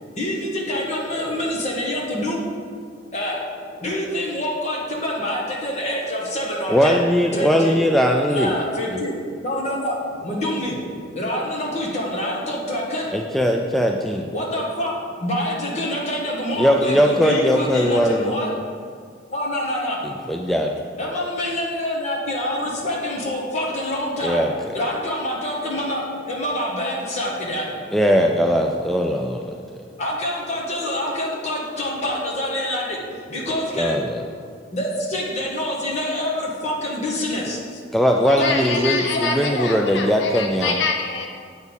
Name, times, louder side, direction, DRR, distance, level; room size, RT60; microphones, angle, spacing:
voice 1, 0.0-2.5 3.1-7.0 7.3-7.8 8.3-13.4 14.3-18.5 19.3-20.6 21.0-24.4 24.7-28.0 28.7-28.8 29.5-37.6 38.4-39.7, left 1 dB, 35° left, -3 dB, 1.6 m, -26 dB
voice 2, 6.7-8.6 13.1-14.3 16.6-18.3 20.0-20.8 24.2-24.8 27.9-29.8 33.8-34.2 37.9-40.7, equal, ahead, 1 dB, 0.3 m, -20 dB
voice 3, 38.2-41.3, left 5 dB, 65° left, 3 dB, 0.6 m, -26 dB
8.0 x 4.2 x 7.1 m, 2.1 s
head